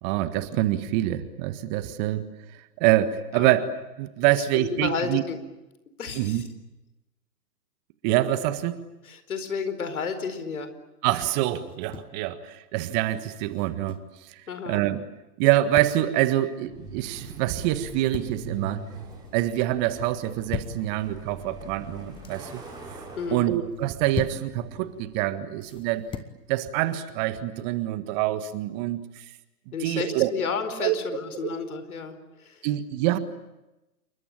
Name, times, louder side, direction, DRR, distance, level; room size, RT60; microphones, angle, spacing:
voice 1, 0.0-2.2 2.8-3.7 4.0-5.2 6.1-6.4 8.0-8.8 11.0-14.0 14.7-15.0 15.4-18.8 19.3-22.6 23.3-26.1 26.5-29.0 29.8-30.3 30.8-31.0 32.6-33.2, right 14 dB, 30° right, 12 dB, 1.6 m, -25 dB
voice 2, 4.4-5.4 6.0-6.4 9.0-10.7 14.5-14.8 23.2-23.5 29.7-32.7, left 5 dB, 65° left, 10 dB, 4.7 m, -32 dB
sound 1, 11.6-12.2 13.5-14.1 15.4-16.0 17.7-18.5 18.8-19.3 20.2-20.8 21.9-22.4 23.7-24.5 25.6-26.4, left 7 dB, 10° left, 1.2 m, -38 dB
Truck, 16.6-25.4, right 3 dB, 10° right, 6.9 m, -42 dB
28.5 x 23.5 x 8.8 m, 1.0 s
figure-of-eight pair, 125°, 46 cm